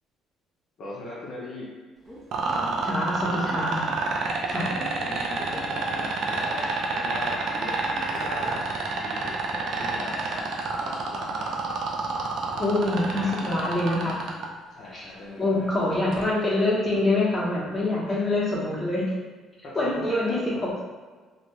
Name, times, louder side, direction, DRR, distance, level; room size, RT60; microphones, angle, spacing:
voice 1, 0.8-1.7 4.5-7.7 8.1-10.4 10.8-11.5 12.4-13.8 14.7-15.9 18.0-18.2 19.6-20.6, left 2 dB, 60° left, -5 dB, 0.6 m, -40 dB
Subway metro underground / Alarm, 2.0-11.8, right 1 dB, 10° right, 0.8 m, -45 dB
sound 1, 2.3-14.5 16.1-16.2, right 4 dB, 70° right, 0.4 m, -28 dB
voice 2, 2.8-3.9 4.5-4.7 12.6-14.3 14.9-15.1 15.4-19.1 19.7-20.8, left 2 dB, 20° left, -6 dB, 0.9 m, -25 dB
2.6 x 2.2 x 3.0 m, 1.4 s
cardioid pair, 90°, 0 cm